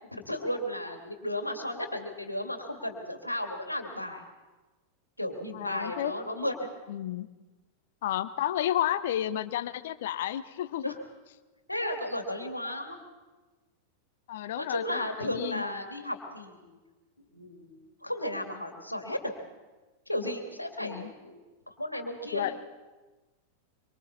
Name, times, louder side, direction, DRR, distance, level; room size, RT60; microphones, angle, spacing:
voice 1, 0.1-4.2 5.2-6.7 10.8-11.0 11.7-13.0 14.5-16.8 17.2-19.3 20.1-21.4 21.7-22.5, left 1 dB, 85° left, 4 dB, 2.5 m, -34 dB
voice 2, 5.5-6.1 6.9-7.3 8.0-10.9 14.3-15.6 20.8-21.1 22.3-22.5, left 12 dB, 55° left, 14 dB, 1.0 m, -31 dB
25.5 x 24.5 x 4.2 m, 1.2 s
figure-of-eight pair, 90°, 0 cm